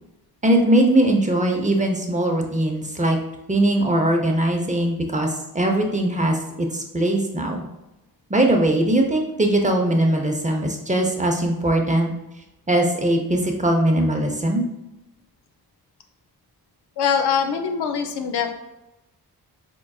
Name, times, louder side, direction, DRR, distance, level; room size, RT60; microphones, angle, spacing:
voice 1, 0.4-3.2 3.5-7.6 8.3-12.1 12.7-14.6, right 1 dB, 20° right, 2 dB, 0.6 m, -20 dB
voice 2, 17.0-18.6, left 7 dB, 85° left, 5 dB, 0.5 m, -23 dB
4.4 x 2.5 x 2.3 m, 0.94 s
cardioid pair, 60°, 39 cm